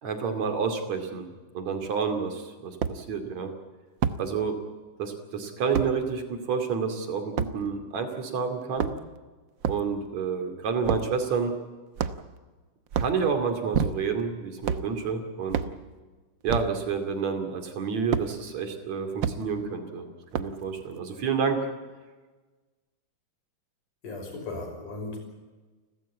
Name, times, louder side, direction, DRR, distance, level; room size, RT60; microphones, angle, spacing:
voice 1, 0.0-3.5 4.2-4.6 5.0-8.9 9.7-11.5 13.0-15.6 16.4-20.1 20.3-21.6, right 5 dB, 60° right, 6 dB, 3.7 m, -29 dB
sound 1, 1.8-1.9 2.8-3.0 4.0-4.2 5.7-5.9 7.4-7.5 8.6-9.2 9.6-9.9 10.8-11.1 12.0-12.4 12.9-13.2 13.7-14.2 14.6-14.9 15.5-15.8 16.5-16.7 18.1-18.3 19.2-19.4 20.3-20.6, right 7 dB, 85° right, 1.0 m, -28 dB
voice 2, 24.0-25.2, left 2 dB, 85° left, 2 dB, 7.2 m, -36 dB
30.0 x 14.0 x 8.5 m, 1.3 s
omnidirectional pair, 3.5 m